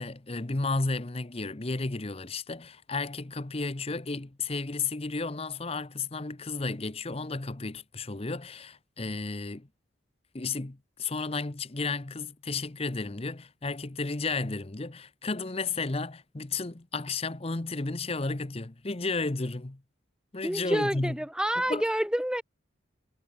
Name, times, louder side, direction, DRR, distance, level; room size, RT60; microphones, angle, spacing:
voice 1, 0.0-9.7 10.3-19.8 20.3-21.1 21.7-21.8, left 3 dB, 30° left, 0.9 m, -33 dB
voice 2, 20.4-22.4, equal, 5° right, 1.4 m, -28 dB
head